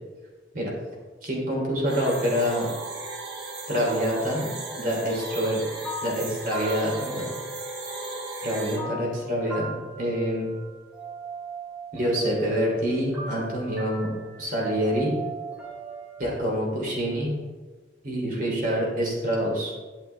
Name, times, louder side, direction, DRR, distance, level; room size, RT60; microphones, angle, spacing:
voice 1, 1.2-2.7 3.7-4.5 4.8-5.6 6.0-7.3 8.4-10.5 11.9-14.1 14.4-15.1 16.2-17.3 18.0-19.7, equal, 50° right, -3 dB, 3.2 m, -26 dB
sound 1, 1.9-8.8, right 2 dB, 75° right, 2.6 m, -36 dB
sound 2, 3.9-7.9 8.1-16.2, right 2 dB, 5° right, 2.6 m, -40 dB
11.0 x 8.8 x 3.4 m, 1.3 s
head